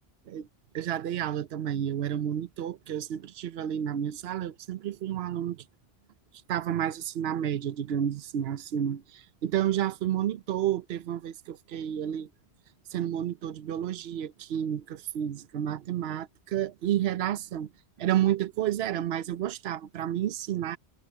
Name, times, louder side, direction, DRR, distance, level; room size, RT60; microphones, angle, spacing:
voice 1, 0.7-5.6 6.5-12.3 12.9-17.7 18.0-20.8, right 10 dB, 75° right, 0.9 m, -30 dB
omnidirectional pair, 1.1 m